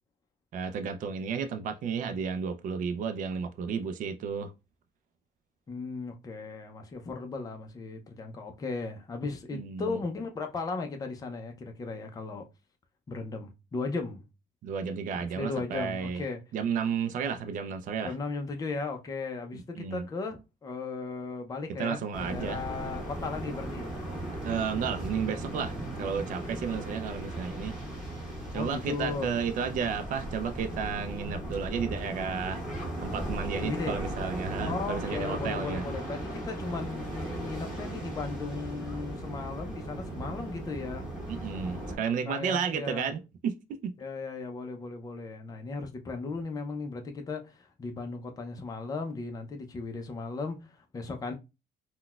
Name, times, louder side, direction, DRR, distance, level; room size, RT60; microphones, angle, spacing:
voice 1, 0.5-4.5 9.5-10.0 14.6-16.2 16.5-18.1 19.8-20.1 21.8-22.6 24.4-27.8 28.5-32.6 33.0-35.8 41.3-43.9, right 6 dB, 50° right, 0.4 m, -32 dB
voice 2, 5.7-12.4 13.1-14.2 15.1-16.4 18.0-24.0 28.5-29.3 33.6-34.0 34.7-41.1 42.3-43.1 44.0-51.3, left 4 dB, 20° left, 0.5 m, -36 dB
sound 1, 22.1-42.0, right 1 dB, 5° right, 1.7 m, -37 dB
3.9 x 2.2 x 2.2 m
cardioid pair, 110°, 17 cm